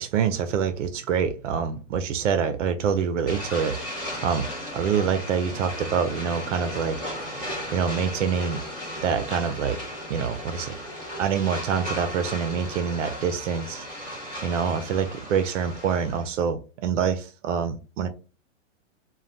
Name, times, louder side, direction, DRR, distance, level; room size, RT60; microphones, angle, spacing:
voice 1, 0.0-3.8 4.0-4.5 4.7-7.0 7.2-8.6 9.0-9.8 10.1-10.8 11.2-13.9 14.4-18.1, right 7 dB, 75° right, 9 dB, 0.5 m, -26 dB
sound 1, 3.3-16.3, equal, 10° left, 0.6 m, -36 dB
2.5 x 2.2 x 3.2 m, 0.34 s
hypercardioid pair, 170°, 37 cm